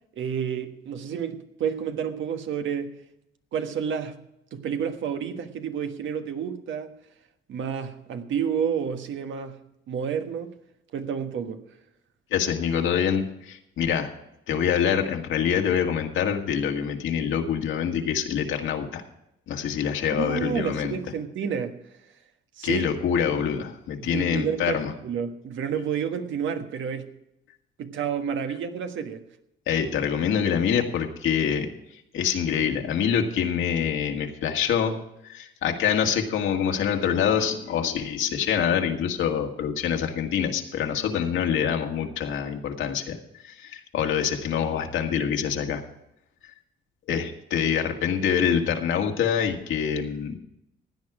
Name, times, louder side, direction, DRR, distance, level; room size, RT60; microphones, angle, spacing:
voice 1, 0.1-2.9 3.5-4.2 4.5-6.9 7.5-9.6 9.9-10.5 10.9-11.6 20.1-21.8 22.6-22.9 24.1-27.1 27.8-29.2, right 7 dB, 75° right, 6 dB, 1.5 m, -30 dB
voice 2, 12.3-14.1 14.5-19.0 19.5-21.0 22.6-24.9 29.7-31.7 32.1-43.2 43.4-45.8 47.1-50.4, left 8 dB, 80° left, 3 dB, 1.9 m, -25 dB
16.0 x 9.8 x 4.9 m, 0.82 s
cardioid pair, 90°, 20 cm